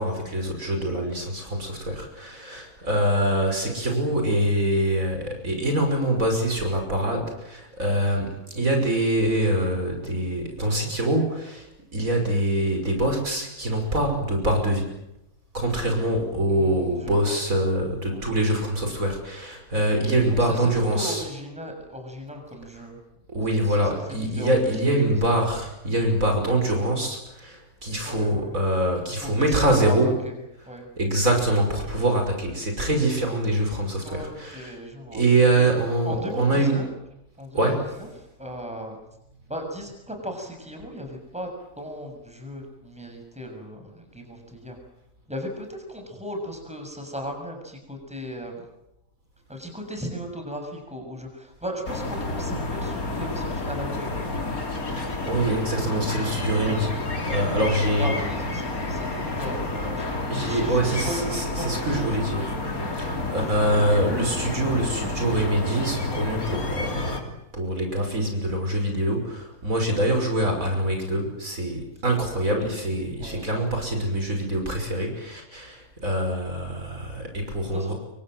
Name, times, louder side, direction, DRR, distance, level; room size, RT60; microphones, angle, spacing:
voice 1, 0.0-11.7 11.9-14.9 15.5-21.2 23.3-30.1 31.0-34.7 35.1-36.8 37.5-37.9 54.9-56.9 57.3-58.2 60.2-62.6 63.0-77.9, right 1 dB, 65° right, 4 dB, 6.2 m, -24 dB
voice 2, 16.5-17.4 18.1-18.3 20.2-23.0 23.5-24.7 25.0-25.4 28.0-28.6 29.2-30.4 30.6-30.9 34.0-35.2 35.5-35.7 36.0-36.9 37.4-38.1 38.4-39.0 39.5-41.5 41.8-44.8 45.3-48.7 49.5-54.1 56.6-56.8 57.3-62.3 63.3-63.8 73.2-73.5 77.6-77.9, equal, 5° right, 3 dB, 6.7 m, -37 dB
sound 1, 51.9-67.2, left 2 dB, 80° left, 3.7 m, -30 dB
29.0 x 24.0 x 7.8 m, 0.85 s
omnidirectional pair, 1.5 m